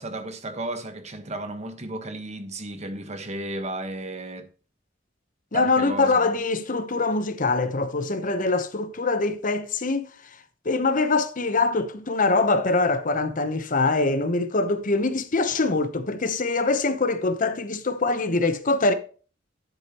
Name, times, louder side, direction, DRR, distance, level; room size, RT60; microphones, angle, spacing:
voice 1, 0.0-4.5 5.5-6.3, right 1 dB, 35° right, 1.3 m, -34 dB
voice 2, 5.5-10.1 10.6-18.9, left 3 dB, 45° left, 0.9 m, -23 dB
10.5 x 7.8 x 3.0 m
head